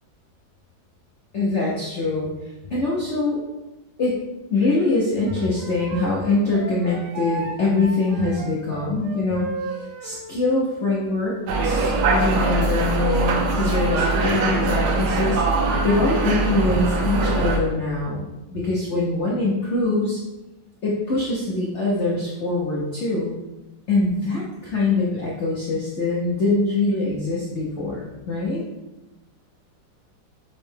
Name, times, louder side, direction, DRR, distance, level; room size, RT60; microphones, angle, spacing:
voice 1, 1.3-3.4 4.0-4.2 4.5-9.5 10.0-11.4 11.6-20.2 20.8-23.4 23.9-28.6, left 3 dB, 75° left, -5 dB, 0.6 m, -23 dB
Wind instrument woodwind instrument, 5.2-10.3, right 1 dB, 85° right, 1.7 m, -34 dB
sound 1, 11.5-17.6, right 3 dB, 70° right, 1.1 m, -22 dB
5.5 x 2.1 x 3.2 m, 1.0 s
omnidirectional pair, 2.1 m